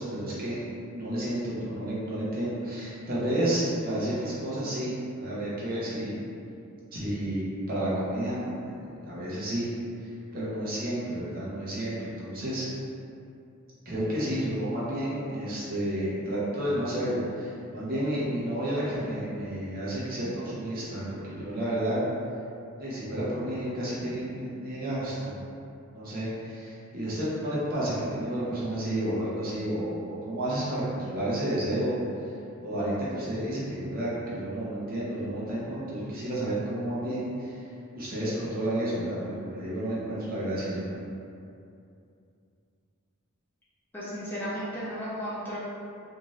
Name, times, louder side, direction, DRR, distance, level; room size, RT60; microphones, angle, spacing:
voice 1, 0.0-6.2 6.9-8.5 8.7-9.7 10.0-12.7 13.8-22.0 22.8-25.4 25.9-31.9 32.6-37.6 37.9-40.9, right 1 dB, 45° right, -8 dB, 0.8 m, -31 dB
voice 2, 43.9-45.6, equal, 10° left, -10 dB, 0.5 m, -34 dB
2.6 x 2.5 x 3.0 m, 2.6 s
head